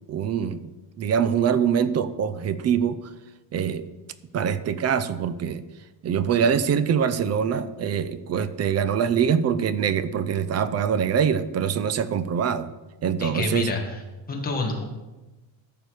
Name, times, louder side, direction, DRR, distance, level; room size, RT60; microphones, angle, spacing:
voice 1, 0.1-0.7 1.0-3.1 3.5-3.9 4.3-5.6 6.0-12.7 13.0-13.7, right 7 dB, 35° right, 14 dB, 0.4 m, -24 dB
voice 2, 13.2-13.8 14.3-14.8, left 3 dB, 20° left, 1 dB, 1.6 m, -27 dB
13.5 x 6.8 x 4.8 m, 1.1 s
cardioid pair, 180°, 44 cm